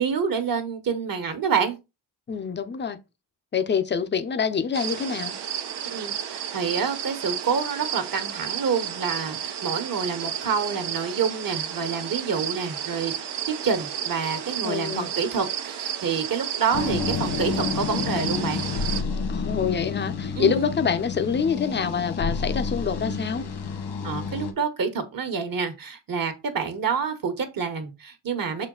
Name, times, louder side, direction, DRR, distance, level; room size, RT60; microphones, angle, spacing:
voice 1, 0.0-1.8 5.9-13.1 13.5-18.6 20.3-20.7 24.0-28.7, right 6 dB, 50° right, 1.4 m, -27 dB
voice 2, 2.3-3.0 3.5-5.3 14.6-15.1 19.3-23.5, left 6 dB, 25° left, 0.6 m, -26 dB
sound 1, 4.7-19.0, right 9 dB, 70° right, 0.9 m, -32 dB
sound 2, 16.7-24.5, left 5 dB, 75° left, 1.7 m, -29 dB
6.4 x 4.4 x 3.9 m
wide cardioid pair, 145°, 42 cm